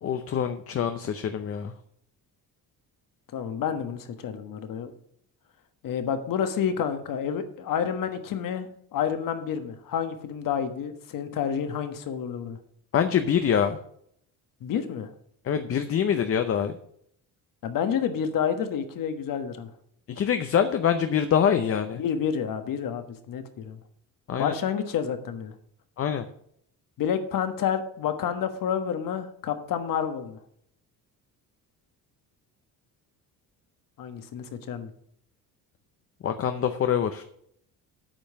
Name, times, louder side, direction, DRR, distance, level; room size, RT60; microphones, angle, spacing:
voice 1, 0.0-1.7 12.9-13.8 15.4-16.8 20.1-22.0 24.3-24.5 26.0-26.3 36.2-37.2, left 8 dB, 40° left, 8 dB, 0.7 m, -25 dB
voice 2, 3.3-4.9 5.8-12.6 14.6-15.1 17.6-19.7 22.0-23.8 24.4-25.5 27.0-30.4 34.0-34.9, left 8 dB, 60° left, 9 dB, 1.4 m, -29 dB
8.9 x 5.4 x 7.7 m, 0.69 s
cardioid pair, 125°, 36 cm